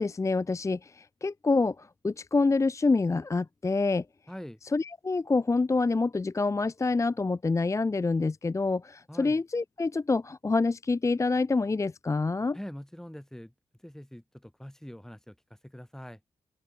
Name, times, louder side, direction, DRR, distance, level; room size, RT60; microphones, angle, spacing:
voice 1, 0.0-4.1 4.7-12.6, left 3 dB, 25° left, 0.6 m, -27 dB
voice 2, 4.3-4.6 9.1-9.4 12.5-13.5 13.8-16.2, equal, 5° left, 8.0 m, -44 dB
cardioid pair, 75°, 12 cm